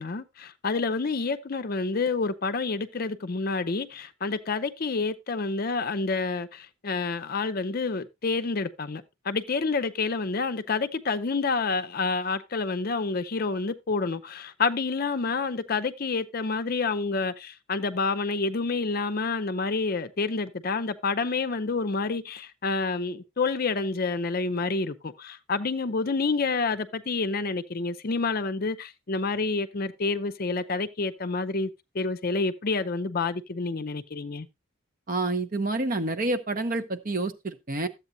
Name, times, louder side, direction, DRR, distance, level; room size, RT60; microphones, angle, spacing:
voice 1, 0.0-34.5, left 4 dB, 45° left, 0.5 m, -28 dB
voice 2, 35.1-37.9, right 2 dB, 40° right, 0.8 m, -28 dB
13.0 x 8.1 x 2.7 m
head